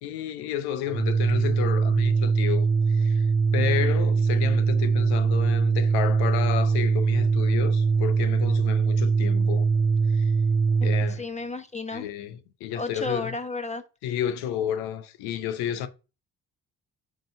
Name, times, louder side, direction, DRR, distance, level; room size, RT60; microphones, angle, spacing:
voice 1, 0.0-3.3 3.5-9.7 10.1-10.3 10.8-11.3 11.9-13.4 14.0-15.9, left 10 dB, 75° left, 0.8 m, -31 dB
Organ, 0.9-11.2, right 4 dB, 25° right, 0.6 m, -22 dB
voice 2, 10.8-12.1 12.7-13.8, left 3 dB, 15° left, 1.0 m, -33 dB
5.0 x 3.9 x 5.2 m
hypercardioid pair, 45°, 39 cm